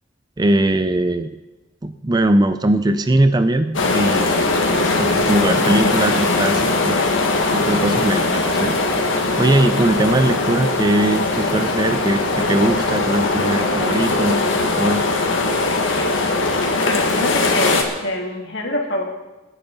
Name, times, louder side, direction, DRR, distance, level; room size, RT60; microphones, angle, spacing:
voice 1, 0.4-1.3 1.8-4.5 5.0-7.0 7.5-8.7 9.4-15.1, right 1 dB, 20° right, 10 dB, 0.4 m, -20 dB
sound 1, 3.7-17.8, left 2 dB, 80° left, 1.9 m, -20 dB
voice 2, 16.8-19.0, left 1 dB, 60° left, 0 dB, 2.8 m, -24 dB
22.5 x 10.5 x 4.0 m, 1.1 s
head